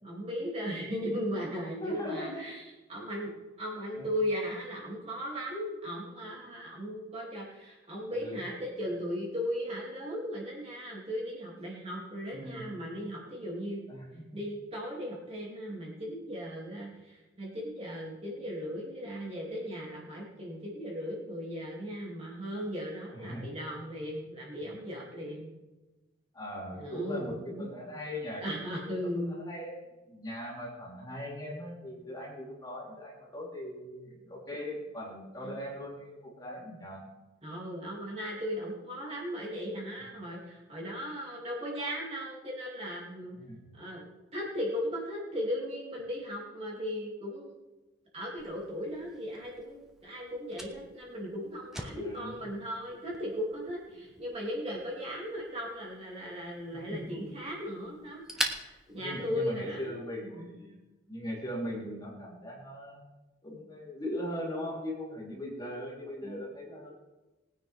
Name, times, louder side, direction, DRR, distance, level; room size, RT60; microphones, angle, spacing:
voice 1, 0.0-2.6 2.9-13.8 14.3-25.5 26.7-27.7 28.4-29.4 35.4-35.6 37.4-43.3 43.7-44.1 44.3-47.5 48.1-60.5 66.2-66.4, equal, 30° right, -4 dB, 2.6 m, -37 dB
voice 2, 1.8-2.5 4.0-4.1 8.1-8.4 12.3-12.6 13.9-14.4 23.1-23.6 26.3-28.4 28.8-29.8 30.1-37.0 43.4-43.7 51.9-52.4 56.7-57.2 58.9-60.8 61.1-63.1 63.4-66.9, equal, 20° left, -6 dB, 3.6 m, -40 dB
Fire, 48.4-59.9, equal, ahead, 0.9 m, -44 dB
20.0 x 9.6 x 3.5 m, 1.1 s
head